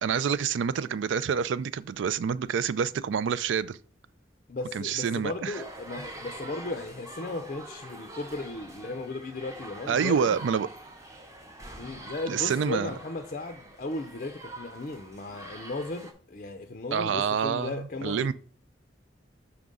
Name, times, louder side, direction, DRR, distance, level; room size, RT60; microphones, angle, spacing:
voice 1, 0.0-3.8 4.7-5.5 9.9-10.7 12.3-12.9 16.9-18.3, right 7 dB, 80° right, 0.4 m, -27 dB
voice 2, 4.5-10.4 11.8-18.3, left 2 dB, 40° left, 0.4 m, -36 dB
sound 1, 5.5-16.1, right 1 dB, 15° right, 0.7 m, -45 dB
5.8 x 3.6 x 5.3 m
head